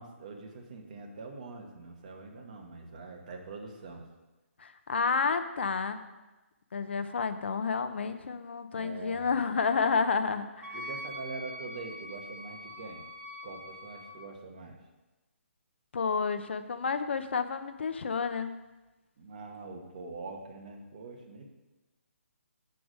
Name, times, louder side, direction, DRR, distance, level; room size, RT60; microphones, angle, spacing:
voice 1, 0.0-4.0 8.7-9.4 10.7-13.0 13.4-14.8 19.2-21.5, right 3 dB, 30° right, 2 dB, 1.0 m, -44 dB
voice 2, 4.6-6.0 6.7-10.8 15.9-18.6, left 5 dB, 50° left, 10 dB, 0.5 m, -30 dB
Wind instrument woodwind instrument, 10.6-14.2, equal, 85° right, 1.3 m, -43 dB
7.8 x 4.7 x 6.2 m, 1.1 s
hypercardioid pair, 175°, 8 cm